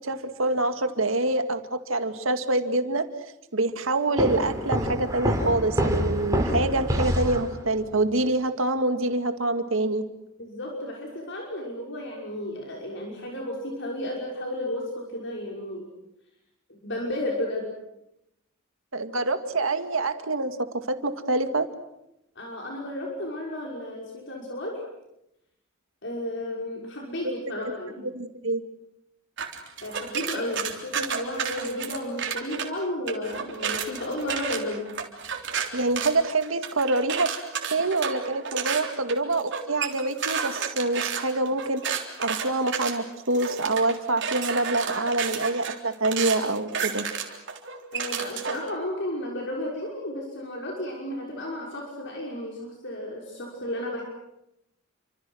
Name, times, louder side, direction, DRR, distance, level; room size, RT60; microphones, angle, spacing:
voice 1, 0.0-3.0 3.5-10.0 18.9-21.7 27.7-27.8 28.0-28.6 35.7-37.3 37.7-41.8 42.2-47.1, right 2 dB, 80° right, 8 dB, 2.1 m, -26 dB
sound 1, 4.2-7.9, equal, 15° right, 3.9 m, -26 dB
voice 2, 10.4-15.9 16.7-17.7 22.4-24.8 26.0-28.1 29.8-35.0 47.9-54.0, left 1 dB, 60° left, -1 dB, 5.9 m, -33 dB
sound 2, 29.4-32.7 33.1-48.7, right 7 dB, 60° right, 3.6 m, -31 dB
29.5 x 26.0 x 6.4 m, 0.85 s
head